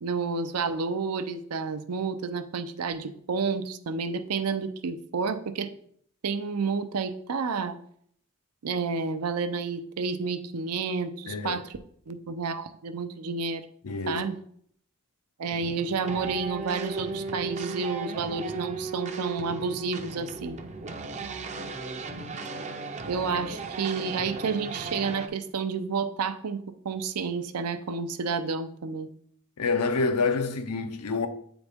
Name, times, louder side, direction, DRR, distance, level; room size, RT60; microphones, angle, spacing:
voice 1, 0.0-5.7 6.2-7.8 8.6-11.7 12.1-13.6 14.1-14.4 15.4-20.6 23.1-29.1, right 5 dB, 80° right, 0.6 m, -30 dB
voice 2, 11.3-11.6 13.8-14.2 29.6-31.3, left 4 dB, 85° left, 0.7 m, -27 dB
sound 1, 15.5-25.3, right 4 dB, 30° right, 0.5 m, -36 dB
8.1 x 4.0 x 3.5 m
head